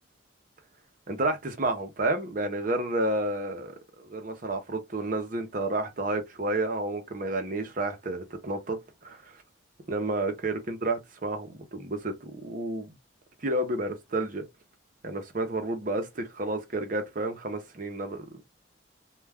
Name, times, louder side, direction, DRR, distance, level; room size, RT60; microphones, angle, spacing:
voice 1, 1.1-9.4 9.9-12.9 13.4-14.5 15.0-18.3, right 2 dB, 40° right, 0.6 m, -31 dB
2.3 x 2.2 x 3.3 m
head